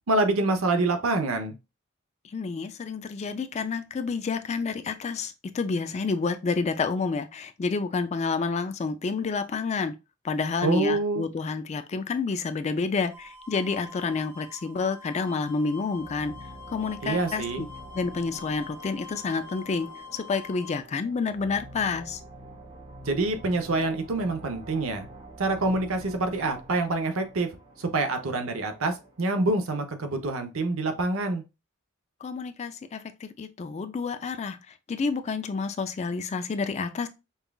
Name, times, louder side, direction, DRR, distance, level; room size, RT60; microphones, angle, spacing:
voice 1, 0.1-1.5 10.6-11.3 17.0-17.7 23.1-25.1 25.4-27.5 27.8-31.4, right 2 dB, 70° right, 0.7 m, -26 dB
voice 2, 2.3-9.9 10.2-16.3 16.7-17.7 17.9-22.2 32.2-34.6 34.9-37.1, left 4 dB, 30° left, 0.3 m, -29 dB
sound 1, 13.1-20.8, left 5 dB, 10° right, 0.6 m, -45 dB
sound 2, 15.9-29.3, right 1 dB, 35° right, 1.5 m, -47 dB
5.4 x 2.3 x 2.3 m
head